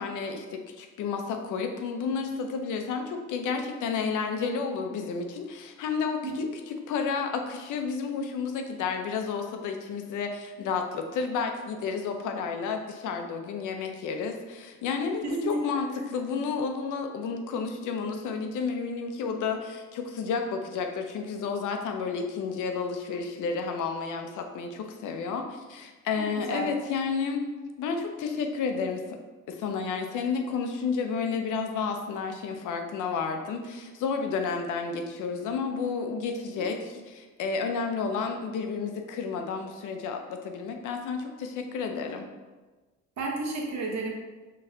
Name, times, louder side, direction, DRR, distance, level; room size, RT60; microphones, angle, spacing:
voice 1, 0.0-27.4 27.8-29.0 29.5-42.3, left 5 dB, 85° left, 4 dB, 0.7 m, -31 dB
voice 2, 15.2-15.8 26.4-26.7 36.6-36.7 43.2-44.1, right 3 dB, 65° right, -1 dB, 1.1 m, -32 dB
4.1 x 3.2 x 3.9 m, 1.2 s
cardioid pair, 90°, 30 cm